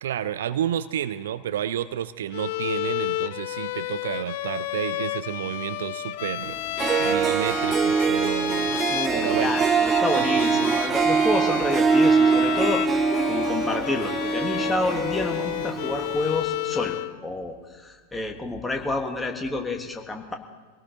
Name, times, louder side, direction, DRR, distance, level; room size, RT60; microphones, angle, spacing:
voice 1, 0.0-6.6 7.0-8.8 9.1-9.5 10.3-10.8, right 10 dB, 60° right, 14 dB, 0.5 m, -30 dB
Bowed string instrument, 2.3-17.2, left 15 dB, 50° left, 0.4 m, -31 dB
Harp, 6.5-6.6 6.8-16.3, right 5 dB, 20° right, 0.8 m, -23 dB
voice 2, 8.9-20.3, left 2 dB, 10° left, 3 dB, 1.5 m, -29 dB
25.5 x 17.5 x 2.8 m, 1.4 s
figure-of-eight pair, 90°, 0 cm